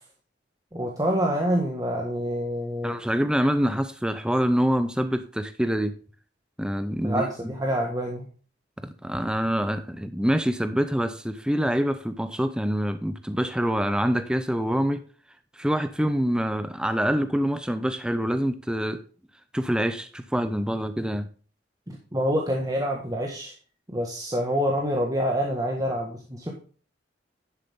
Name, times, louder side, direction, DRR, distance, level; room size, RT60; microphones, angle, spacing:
voice 1, 0.7-3.0 7.0-8.3 21.9-23.5 23.9-26.6, equal, 20° right, 1.5 m, -27 dB
voice 2, 2.8-6.0 6.6-7.5 8.8-15.0 15.5-19.0 19.5-21.3, equal, 5° right, 0.6 m, -26 dB
11.0 x 7.6 x 3.5 m
head